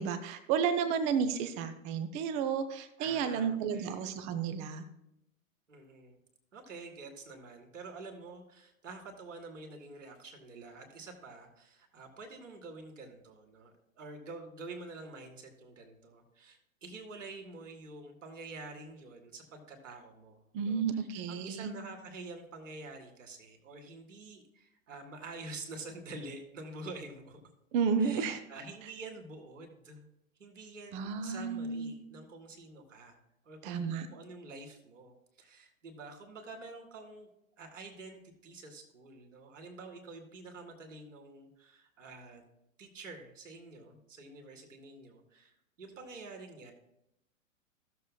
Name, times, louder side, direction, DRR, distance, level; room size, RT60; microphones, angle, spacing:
voice 1, 0.0-4.8 20.5-21.7 27.7-28.4 30.9-31.9 33.6-34.1, right 6 dB, 20° right, 10 dB, 0.5 m, -32 dB
voice 2, 3.0-4.1 5.7-6.2 6.5-27.4 28.0-30.1 30.4-33.2 33.4-37.3 37.6-42.4 42.8-46.7, right 3 dB, 65° right, 3 dB, 2.1 m, -48 dB
15.5 x 6.9 x 2.2 m, 0.82 s
figure-of-eight pair, 105°, 41 cm